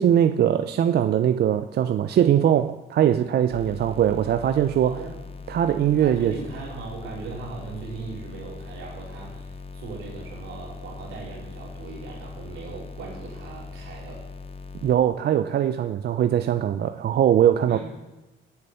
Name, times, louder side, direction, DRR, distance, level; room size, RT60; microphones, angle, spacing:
voice 1, 0.0-5.0 5.5-6.4 14.8-17.8, right 10 dB, 55° right, 10 dB, 0.4 m, -21 dB
sound 1, 3.5-14.9, left 4 dB, 30° left, 0.8 m, -40 dB
voice 2, 6.0-14.2 17.7-17.8, right 4 dB, 85° right, -3 dB, 3.5 m, -38 dB
7.8 x 6.6 x 6.9 m, 1.1 s
cardioid pair, 90°, 20 cm